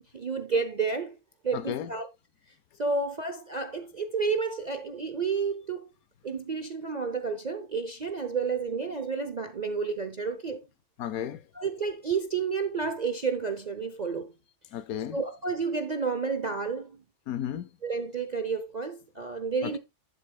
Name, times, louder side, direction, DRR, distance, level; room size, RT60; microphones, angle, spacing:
voice 1, 0.1-1.1 1.4-2.1 2.8-5.8 6.2-10.6 11.5-14.3 15.1-17.0 17.8-19.8, right 5 dB, 45° right, 0.5 m, -30 dB
voice 2, 1.5-1.9 11.0-11.4 14.7-15.2 17.3-17.7 19.6-19.8, left 10 dB, 70° left, 1.1 m, -33 dB
11.5 x 7.4 x 2.3 m
omnidirectional pair, 1.7 m